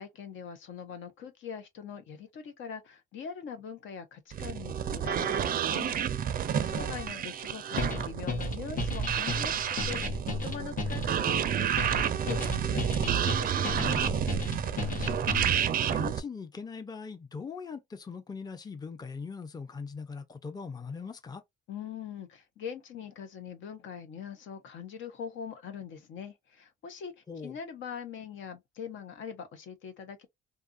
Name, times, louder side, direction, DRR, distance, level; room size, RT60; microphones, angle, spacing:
voice 1, 0.0-5.9 6.3-14.0 21.7-30.3, left 7 dB, 75° left, 0.8 m, -42 dB
sound 1, 4.3-16.2, right 9 dB, 45° right, 0.4 m, -30 dB
voice 2, 6.7-7.0 14.8-15.4 15.8-21.4 27.3-27.5, left 5 dB, 20° left, 0.5 m, -41 dB
sound 2, 7.8-15.7, left 2 dB, 45° left, 1.0 m, -34 dB
2.8 x 2.4 x 2.4 m
cardioid pair, 90°, 20 cm